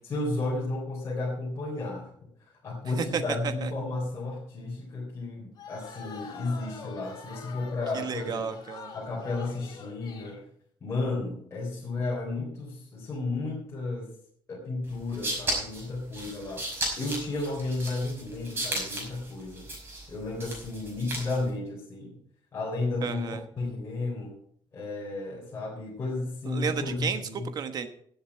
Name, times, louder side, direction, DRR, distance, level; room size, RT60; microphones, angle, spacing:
voice 1, 0.0-2.1 2.6-8.4 8.9-10.4 10.8-14.1 14.5-16.7 17.0-19.7 20.1-22.1 22.5-24.4 24.7-27.5, left 2 dB, 30° left, -4 dB, 3.8 m, -33 dB
voice 2, 3.0-3.7 7.9-8.9 23.0-23.4 26.4-27.9, right 6 dB, 45° right, 9 dB, 1.3 m, -32 dB
sound 1, 5.6-10.4, left 5 dB, 45° left, 2.9 m, -45 dB
sound 2, 14.9-21.5, right 1 dB, 25° right, 5.7 m, -35 dB
17.0 x 8.0 x 4.7 m, 0.66 s
cardioid pair, 155°, 9 cm